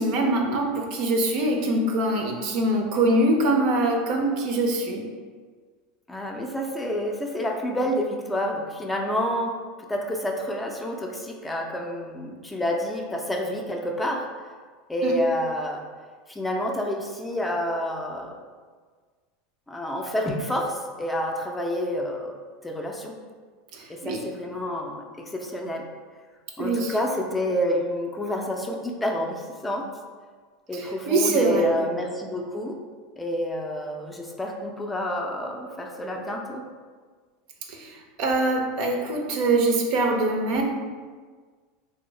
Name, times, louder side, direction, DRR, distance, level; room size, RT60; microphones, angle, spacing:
voice 1, 0.0-5.0 15.0-15.2 23.7-24.2 26.6-26.9 30.7-31.7 37.7-40.6, right 2 dB, 60° right, 2 dB, 0.5 m, -23 dB
voice 2, 6.1-9.5 9.9-14.3 14.9-15.8 16.3-18.3 19.7-22.3 22.6-23.2 23.9-25.8 26.6-29.8 30.7-32.8 33.2-36.6, equal, 10° left, 1 dB, 0.4 m, -28 dB
3.0 x 2.0 x 3.8 m, 1.5 s
hypercardioid pair, 90°, 0 cm